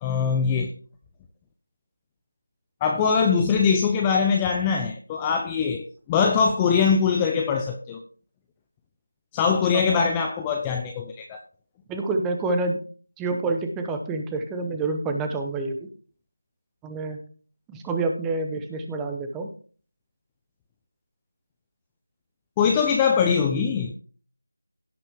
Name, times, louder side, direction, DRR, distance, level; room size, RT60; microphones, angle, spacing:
voice 1, 0.0-0.7 2.8-8.0 9.3-11.4 22.6-23.9, left 6 dB, 10° left, 0.6 m, -22 dB
voice 2, 9.7-10.1 11.9-12.8 13.2-15.8 16.8-17.2 17.7-19.5, right 3 dB, 5° right, 1.0 m, -28 dB
16.5 x 5.8 x 3.6 m
figure-of-eight pair, 170°, 0 cm